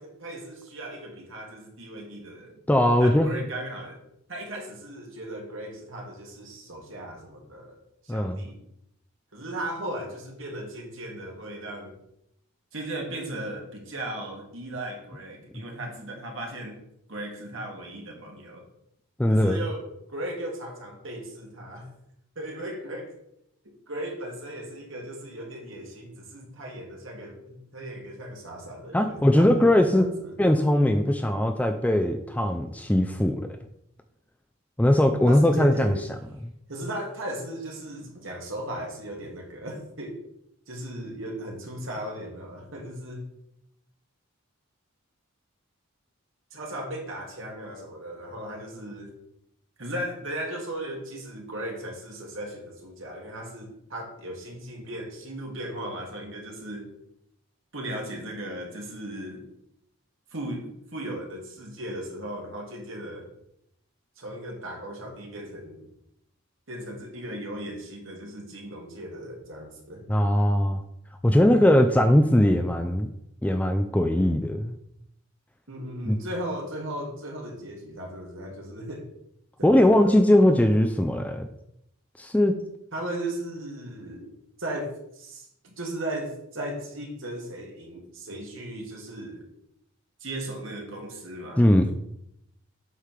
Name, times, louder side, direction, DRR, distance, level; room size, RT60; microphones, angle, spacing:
voice 1, 0.0-2.6 3.0-4.0 4.3-7.8 8.0-8.6 9.3-11.9 12.7-16.8 17.1-18.6 19.3-21.9 22.3-23.1 23.6-30.3 35.2-36.1 36.7-40.2 40.7-43.3 46.5-49.1 49.8-56.9 57.7-59.4 60.3-63.3 64.2-65.8 66.7-70.0 75.7-79.1 79.6-80.2 82.9-84.3 84.6-89.4 90.2-91.7, right 1 dB, 60° right, 0 dB, 1.8 m, -37 dB
voice 2, 2.7-3.3 8.1-8.4 19.2-19.6 28.9-30.1 30.4-33.6 34.8-35.9 70.1-70.8 71.2-73.1 73.4-74.8 76.1-76.2 79.6-81.5 82.2-82.5 91.6-91.9, left 1 dB, 5° left, 6 dB, 0.3 m, -20 dB
8.2 x 3.3 x 5.8 m, 0.78 s
head